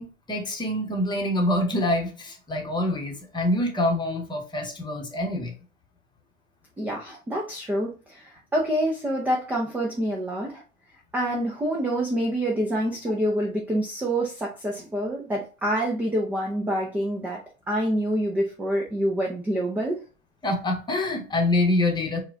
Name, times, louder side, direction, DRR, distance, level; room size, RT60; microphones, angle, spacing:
voice 1, 0.0-5.5 20.4-22.2, left 1 dB, 10° left, 2 dB, 1.0 m, -26 dB
voice 2, 6.8-10.6 11.1-17.4 17.7-20.0, right 1 dB, 5° right, -1 dB, 0.3 m, -27 dB
4.6 x 2.3 x 3.7 m, 0.34 s
hypercardioid pair, 105°, 39 cm